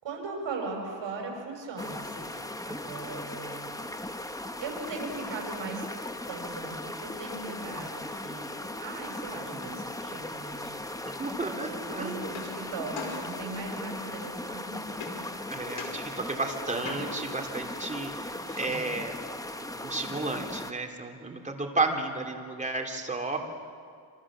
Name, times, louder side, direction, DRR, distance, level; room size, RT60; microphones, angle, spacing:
voice 1, 0.0-3.8 4.3-5.9 6.3-11.1 11.6-15.3 18.5-19.1 23.3-23.4, right 3 dB, 65° right, 1 dB, 6.7 m, -39 dB
sound 1, 1.8-20.7, left 1 dB, 5° left, 1.1 m, -38 dB
voice 2, 11.0-12.3 15.5-19.2 19.6-23.4, right 3 dB, 15° right, 2 dB, 3.1 m, -33 dB
sound 2, 12.2-13.8 15.0-15.5 15.8-17.4 20.7-20.8 21.1-22.1, left 5 dB, 80° left, 5.5 m, -43 dB
26.5 x 26.5 x 7.5 m, 2.2 s
cardioid pair, 115°, 47 cm